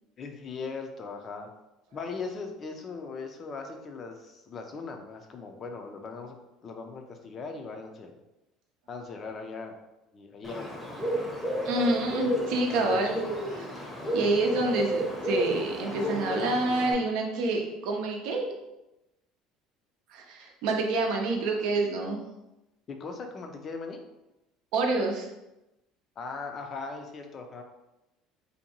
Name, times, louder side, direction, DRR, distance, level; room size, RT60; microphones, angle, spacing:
voice 1, 0.2-1.5 1.9-6.4 6.6-8.2 8.9-9.7 10.1-10.8 12.8-13.0 13.3-13.5 22.9-24.0 26.2-27.6, left 4 dB, 40° left, 4 dB, 0.4 m, -39 dB
Bird, 10.4-16.9, equal, ahead, 0.7 m, -31 dB
voice 2, 11.6-13.2 13.6-13.7 14.1-18.5 20.1-22.2 24.7-25.3, right 2 dB, 75° right, 2 dB, 0.5 m, -27 dB
2.6 x 2.2 x 2.8 m, 0.95 s
supercardioid pair, 100°, 0 cm